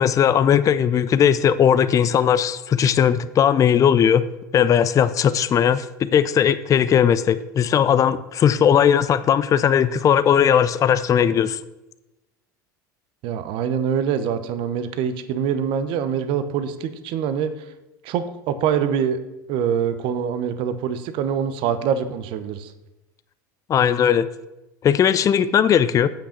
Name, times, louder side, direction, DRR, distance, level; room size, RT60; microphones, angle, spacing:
voice 1, 0.0-4.2 4.5-11.6 23.7-24.3 24.8-26.1, left 8 dB, 35° left, 15 dB, 0.4 m, -18 dB
voice 2, 13.2-17.5 18.0-19.2 19.5-22.7, right 8 dB, 55° right, 12 dB, 0.8 m, -24 dB
8.5 x 6.0 x 5.8 m, 0.99 s
hypercardioid pair, 75°, 10 cm